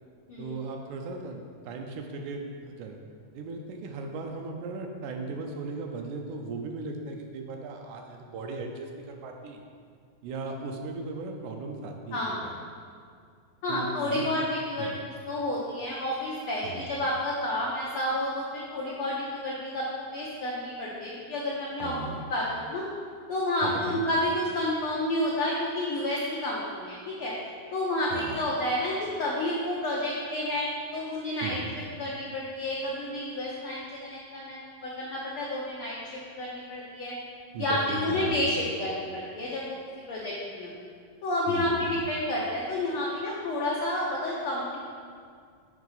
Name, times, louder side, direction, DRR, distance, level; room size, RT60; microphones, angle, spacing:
voice 1, 0.4-3.0 3.3-9.6 10.2-12.6 13.7-14.3 14.8-15.0 16.6-16.9 21.8-22.2 23.6-24.0 28.1-28.4 31.4-31.7 37.5-38.5 41.5-42.0, right 3 dB, 80° right, 3 dB, 2.0 m, -37 dB
voice 2, 12.1-12.4 13.6-21.9 22.3-22.8 23.3-27.3 27.7-31.6 32.0-37.1 37.6-39.8 40.1-40.7 41.2-44.8, left 1 dB, 80° left, -5 dB, 1.2 m, -30 dB
7.3 x 5.5 x 4.0 m, 2.1 s
omnidirectional pair, 3.6 m